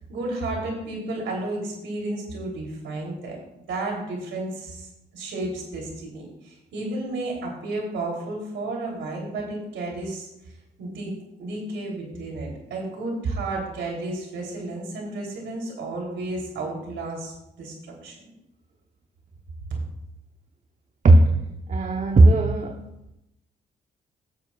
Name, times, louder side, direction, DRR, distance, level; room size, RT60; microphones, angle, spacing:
voice 1, 0.1-3.4 3.7-4.9 5.1-10.3 10.8-18.2 19.7-19.8, right 2 dB, 75° right, -1 dB, 3.5 m, -32 dB
voice 2, 21.0-22.9, right 2 dB, 40° right, 4 dB, 1.0 m, -17 dB
16.5 x 7.4 x 2.5 m, 0.91 s
supercardioid pair, 60°, 20 cm